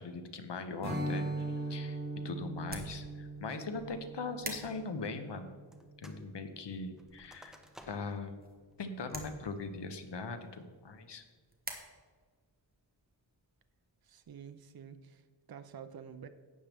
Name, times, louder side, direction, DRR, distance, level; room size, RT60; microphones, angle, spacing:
voice 1, 0.0-2.0 2.2-5.5 6.0-7.6 7.9-8.3 8.8-11.2, left 4 dB, 60° left, 8 dB, 1.0 m, -40 dB
Strum, 0.8-6.2, right 2 dB, 35° right, 2.8 m, -40 dB
sound 1, 1.3-11.7, right 2 dB, 20° right, 1.3 m, -50 dB
sound 2, 5.7-6.3 6.6-8.3 8.7-8.8 9.3-9.7 10.2-10.6, equal, ahead, 0.8 m, -57 dB
voice 2, 14.0-16.3, right 7 dB, 50° right, 10 dB, 0.7 m, -49 dB
12.0 x 8.7 x 3.5 m, 1.5 s
wide cardioid pair, 110°, 47 cm